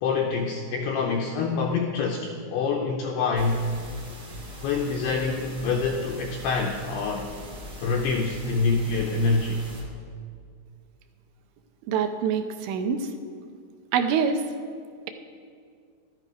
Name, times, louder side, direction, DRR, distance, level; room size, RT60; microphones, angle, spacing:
voice 1, 0.0-3.7 4.6-7.3 7.8-9.6, left 4 dB, 90° left, 2 dB, 2.3 m, -26 dB
sound 1, 3.3-9.8, left 2 dB, 60° right, 0.8 m, -41 dB
voice 2, 11.9-13.1 13.9-14.4, right 6 dB, 80° right, 6 dB, 3.0 m, -25 dB
12.5 x 11.5 x 5.0 m, 2.2 s
omnidirectional pair, 5.4 m